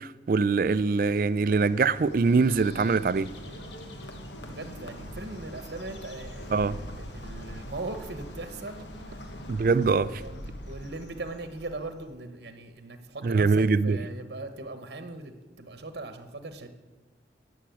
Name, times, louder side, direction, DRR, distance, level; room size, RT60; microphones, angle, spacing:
voice 1, 0.0-3.3 6.5-6.8 9.5-10.2 13.2-14.0, right 4 dB, 50° right, 0.4 m, -23 dB
Bird, 0.7-12.1, equal, 90° left, 1.3 m, -43 dB
voice 2, 4.4-9.3 10.2-16.7, right 2 dB, 70° right, 1.0 m, -40 dB
11.5 x 6.0 x 9.1 m
head